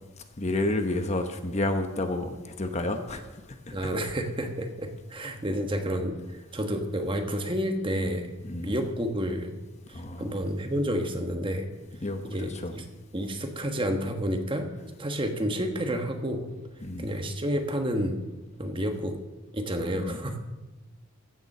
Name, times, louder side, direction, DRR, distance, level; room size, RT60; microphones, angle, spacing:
voice 1, 0.4-3.2 3.7-3.9 8.4-8.7 9.9-10.2 12.0-12.7 16.8-17.1 19.9-20.4, left 2 dB, 30° left, 7 dB, 0.9 m, -30 dB
voice 2, 3.7-6.2 6.5-8.3 8.6-9.5 9.9-11.7 12.2-12.8 13.1-14.7 15.0-16.5 17.0-18.2 18.6-19.2 19.5-20.4, equal, 25° right, 5 dB, 1.3 m, -30 dB
15.0 x 7.0 x 6.7 m, 1.1 s
head